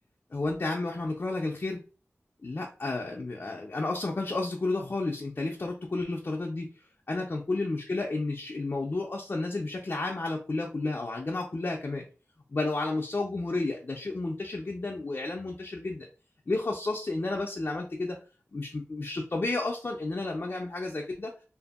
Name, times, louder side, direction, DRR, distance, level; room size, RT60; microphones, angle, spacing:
voice 1, 0.3-1.8 2.4-6.7 7.1-12.1 12.5-16.1 16.5-18.2 18.5-21.3, left 2 dB, 45° left, 0 dB, 0.4 m, -31 dB
2.6 x 2.6 x 2.3 m, 0.36 s
wide cardioid pair, 60°, 5 cm